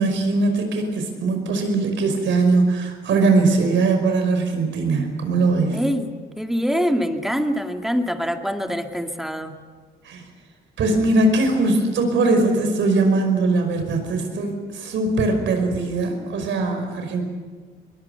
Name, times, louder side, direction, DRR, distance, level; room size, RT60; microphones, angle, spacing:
voice 1, 0.0-5.8 10.0-10.2 10.8-17.2, right 3 dB, 75° right, 5 dB, 5.3 m, -20 dB
voice 2, 5.7-9.5, equal, ahead, 4 dB, 2.2 m, -24 dB
22.0 x 21.5 x 7.0 m, 1.5 s
cardioid pair, 90°, 20 cm